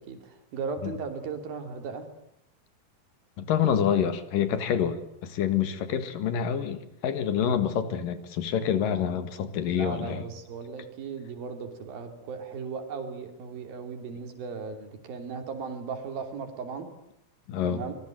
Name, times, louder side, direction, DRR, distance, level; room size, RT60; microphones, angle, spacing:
voice 1, 0.0-2.1 9.7-16.9 17.6-17.9, right 5 dB, 75° right, 6 dB, 4.7 m, -37 dB
voice 2, 3.4-10.3 17.5-17.8, left 8 dB, 70° left, 11 dB, 3.4 m, -27 dB
25.0 x 21.0 x 9.2 m, 0.79 s
omnidirectional pair, 4.2 m